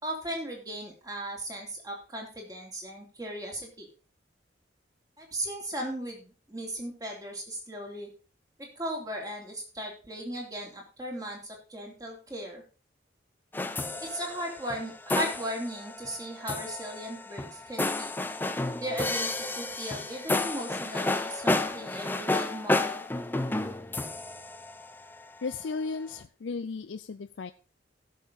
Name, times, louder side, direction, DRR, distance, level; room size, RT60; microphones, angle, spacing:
voice 1, 0.0-3.9 5.2-8.1 8.6-12.6 14.0-18.1 18.8-23.0, equal, 20° right, 0 dB, 3.3 m, -37 dB
sound 1, 13.5-25.4, left 2 dB, 10° left, 0.7 m, -31 dB
voice 2, 25.4-27.5, left 4 dB, 80° left, 10 dB, 0.5 m, -35 dB
15.5 x 6.7 x 4.1 m, 0.33 s
head